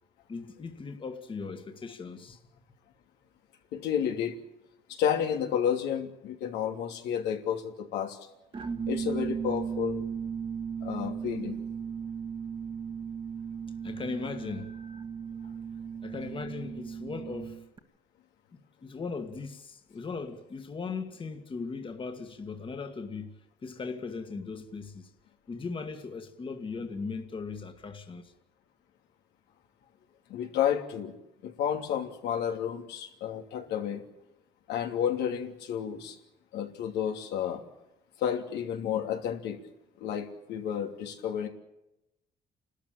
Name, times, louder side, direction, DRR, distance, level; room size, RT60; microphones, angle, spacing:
voice 1, 0.3-2.4 13.8-14.7 16.0-17.6 18.5-23.4 23.6-25.1 25.5-28.3, left 4 dB, 30° left, 2.0 m, -38 dB
voice 2, 3.7-4.3 4.9-8.2 8.9-10.0 10.8-11.5 30.3-31.1 31.4-34.0 34.7-36.1 36.5-37.6 38.2-39.6 40.0-41.5, left 9 dB, 85° left, 3.0 m, -31 dB
sound 1, 8.5-17.8, right 7 dB, 30° right, 1.8 m, -36 dB
29.0 x 13.5 x 8.8 m
cardioid pair, 110°, 17 cm